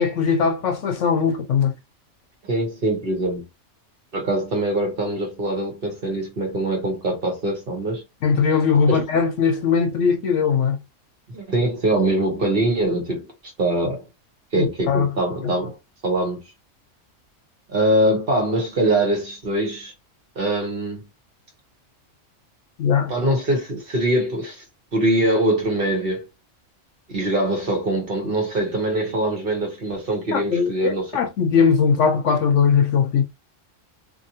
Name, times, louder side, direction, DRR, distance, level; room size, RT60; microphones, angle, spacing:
voice 1, 0.0-1.7 8.2-10.8 14.5-15.1 15.4-15.5 22.8-23.1 30.3-33.2, left 6 dB, 70° left, 1.0 m, -20 dB
voice 2, 2.5-3.4 4.1-8.0 8.9-9.0 11.3-13.2 13.6-14.1 14.5-15.7 16.0-16.4 17.7-19.9 20.4-21.0 23.1-24.6 24.9-26.2 27.1-31.1, right 1 dB, 50° right, 1.1 m, -23 dB
2.7 x 2.6 x 2.7 m
omnidirectional pair, 1.3 m